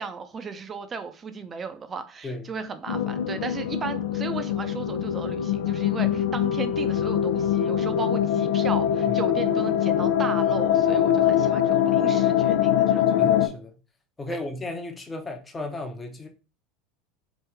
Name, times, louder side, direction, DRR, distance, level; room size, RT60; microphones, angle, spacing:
voice 1, 0.0-13.1 14.3-14.4, right 5 dB, 30° right, 0.5 m, -35 dB
sound 1, 2.9-13.5, left 10 dB, 80° left, 0.3 m, -23 dB
voice 2, 13.2-13.8 14.2-16.3, left 2 dB, 20° left, 0.7 m, -34 dB
3.0 x 2.7 x 3.4 m
hypercardioid pair, 85°, 0 cm